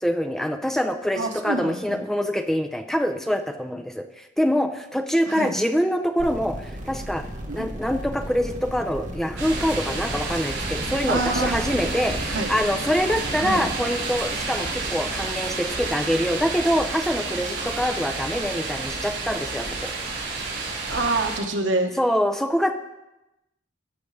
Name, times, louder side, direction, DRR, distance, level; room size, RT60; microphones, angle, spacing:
voice 1, 0.0-7.2 7.5-19.9 22.0-22.7, equal, ahead, 6 dB, 0.5 m, -25 dB
voice 2, 1.2-2.0 5.3-5.6 7.5-7.6 11.1-11.6 12.3-12.5 13.4-13.7 20.9-21.9, right 2 dB, 80° right, 4 dB, 1.2 m, -26 dB
sound 1, 6.2-12.2, equal, 40° right, 1.3 m, -35 dB
sound 2, 9.4-21.4, right 3 dB, 65° right, 4.4 m, -30 dB
18.5 x 6.7 x 3.3 m, 0.94 s
head